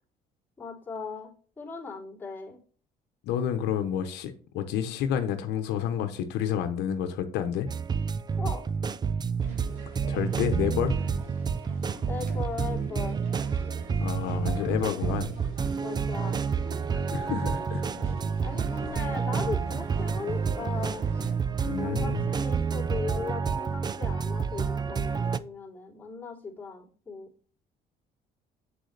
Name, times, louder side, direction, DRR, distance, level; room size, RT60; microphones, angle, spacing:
voice 1, 0.6-1.3 1.6-2.6 8.4-8.6 12.1-13.2 15.8-16.4 18.4-21.1 21.8-27.3, left 5 dB, 10° left, 3.6 m, -38 dB
voice 2, 3.2-7.7 10.1-10.9 13.9-15.3 16.9-17.8 21.6-22.2, left 9 dB, 90° left, 1.0 m, -29 dB
sound 1, 7.7-25.4, right 6 dB, 25° right, 0.4 m, -29 dB
sound 2, 9.4-21.3, right 2 dB, 45° right, 3.7 m, -45 dB
7.4 x 6.5 x 3.3 m
cardioid pair, 110°, 17 cm